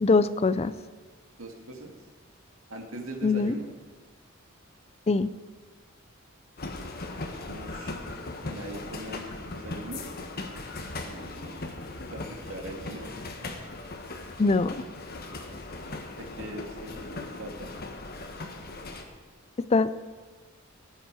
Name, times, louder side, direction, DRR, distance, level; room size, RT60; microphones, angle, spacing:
voice 1, 0.0-0.7 3.2-3.6 5.1-5.3 14.4-14.8 19.7-19.9, left 3 dB, 30° left, 15 dB, 0.4 m, -22 dB
voice 2, 1.4-2.0 2.7-3.7 7.5-8.0 8.4-10.0 11.0-11.6 12.1-13.1 16.2-17.7, right 1 dB, 85° right, 3 dB, 2.1 m, -41 dB
sound 1, 6.6-19.0, left 2 dB, 50° left, 1.4 m, -38 dB
17.5 x 10.0 x 4.7 m, 1.4 s
head